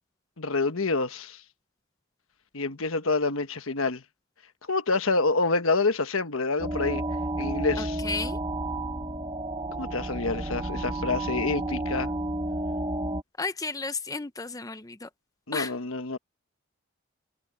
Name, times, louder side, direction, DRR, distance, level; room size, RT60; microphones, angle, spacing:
voice 1, 0.4-1.4 2.5-4.0 4.7-7.0 7.4-8.0 9.8-12.1 15.5-16.2, left 3 dB, 65° left, 1.3 m, -27 dB
sound 1, 6.6-13.2, right 1 dB, 20° right, 1.4 m, -31 dB
voice 2, 7.8-8.4 13.4-15.1 15.5-15.7, left 3 dB, 15° left, 0.7 m, -33 dB
head